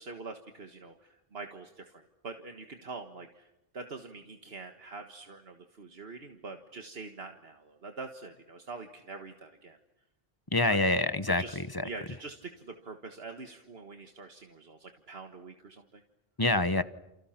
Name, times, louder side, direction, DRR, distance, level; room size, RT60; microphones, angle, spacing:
voice 1, 0.0-9.8 10.7-10.8 11.3-16.0, right 3 dB, 75° right, 5 dB, 1.8 m, -45 dB
voice 2, 10.5-11.9 16.4-16.8, left 2 dB, 25° left, 12 dB, 1.0 m, -26 dB
29.5 x 29.5 x 5.9 m, 0.90 s
omnidirectional pair, 1.0 m